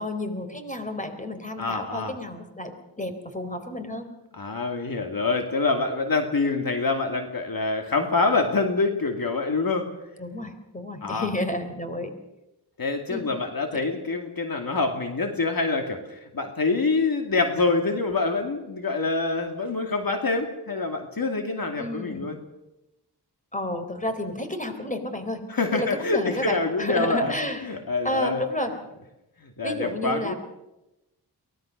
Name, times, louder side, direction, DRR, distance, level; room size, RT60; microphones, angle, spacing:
voice 1, 0.0-4.1 10.2-12.1 13.1-13.2 21.8-22.3 23.5-25.4 25.7-27.8 28.0-28.7 29.6-30.3, left 1 dB, 20° left, 7 dB, 3.9 m, -31 dB
voice 2, 1.6-2.2 4.3-9.8 11.0-11.3 12.8-22.4 25.5-27.3 27.6-28.4 29.6-30.3, left 3 dB, 55° left, 5 dB, 2.5 m, -26 dB
23.5 x 18.5 x 6.6 m, 0.93 s
cardioid pair, 65°, 41 cm